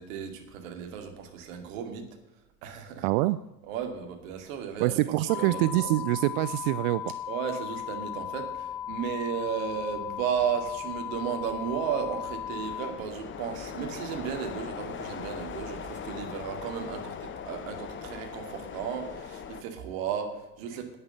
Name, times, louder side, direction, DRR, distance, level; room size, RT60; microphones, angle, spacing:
voice 1, 0.0-2.1 2.6-3.0 3.7-5.0 5.3-5.9 7.3-21.0, right 8 dB, 55° right, 5 dB, 2.6 m, -34 dB
voice 2, 3.0-3.4 4.8-7.1, right 18 dB, 40° right, 15 dB, 0.4 m, -25 dB
sound 1, 4.6-4.9 5.3-19.6, left 7 dB, 25° left, 1.0 m, -42 dB
sound 2, 5.3-12.9, left 10 dB, 75° left, 1.0 m, -37 dB
11.0 x 8.8 x 7.9 m, 0.96 s
figure-of-eight pair, 80°, 47 cm